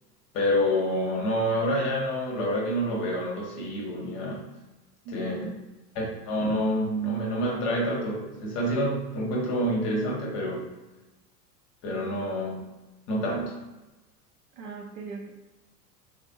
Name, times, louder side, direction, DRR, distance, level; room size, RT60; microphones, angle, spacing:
voice 1, 0.3-4.4 5.1-5.4 5.9-10.7 11.8-12.7 13.1-13.6, equal, 35° left, -2 dB, 0.9 m, -27 dB
voice 2, 5.1-5.5 14.6-15.3, right 3 dB, 50° right, 0 dB, 0.7 m, -38 dB
3.3 x 2.5 x 2.2 m, 1.1 s
figure-of-eight pair, 85°, 49 cm